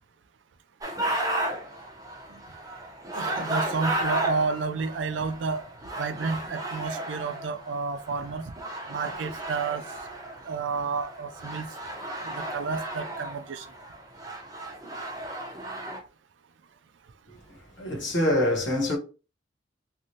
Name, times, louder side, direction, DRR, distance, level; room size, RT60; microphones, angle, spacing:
sound 1, 0.8-16.0, right 1 dB, 20° right, 0.8 m, -34 dB
voice 1, 3.1-5.6 6.0-8.5 8.9-9.8 10.5-11.7 12.2-13.7, right 4 dB, 80° right, 0.4 m, -30 dB
voice 2, 17.3-19.0, left 1 dB, 75° left, 1.2 m, -26 dB
3.1 x 2.6 x 2.7 m
head